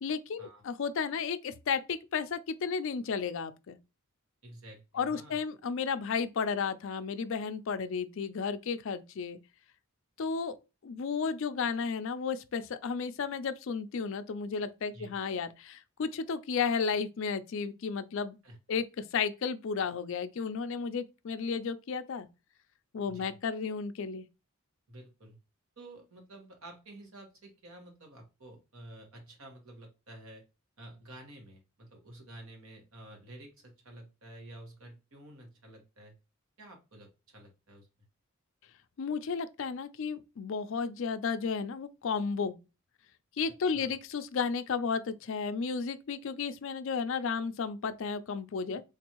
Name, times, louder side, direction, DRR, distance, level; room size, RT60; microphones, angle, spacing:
voice 1, 0.0-3.8 4.9-9.4 10.2-10.6 10.8-18.4 18.7-22.3 22.9-24.3 39.0-42.6 43.4-48.8, left 5 dB, 60° left, 0.4 m, -33 dB
voice 2, 4.4-5.4 14.9-15.2 18.4-18.6 23.1-23.4 24.9-25.4 25.8-30.4 30.8-36.2 36.6-37.9 43.7-43.9, right 1 dB, 70° right, 1.3 m, -51 dB
3.9 x 2.6 x 2.9 m
head